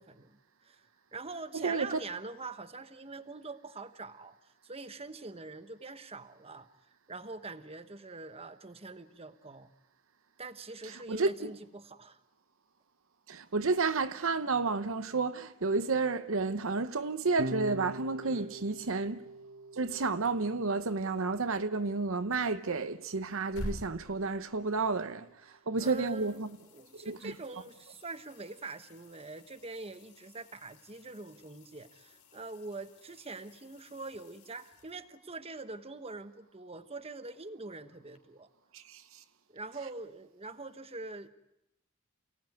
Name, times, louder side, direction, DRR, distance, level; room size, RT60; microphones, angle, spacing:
voice 1, 0.0-4.4 4.6-6.7 7.1-9.7 10.4-12.2 18.2-18.5 25.4-38.5 39.5-41.3, right 3 dB, 30° right, 1.2 m, -44 dB
voice 2, 1.5-1.9 11.1-11.5 13.3-19.2 19.8-25.3 25.7-26.5 27.0-27.3 38.7-39.0, right 3 dB, 65° right, 0.9 m, -31 dB
Electric guitar / Bass guitar, 17.4-23.8, right 2 dB, 50° right, 1.4 m, -44 dB
sound 1, 23.2-25.4 25.8-35.4 38.1-38.2, equal, 90° left, 3.5 m, -50 dB
29.5 x 18.0 x 9.5 m
head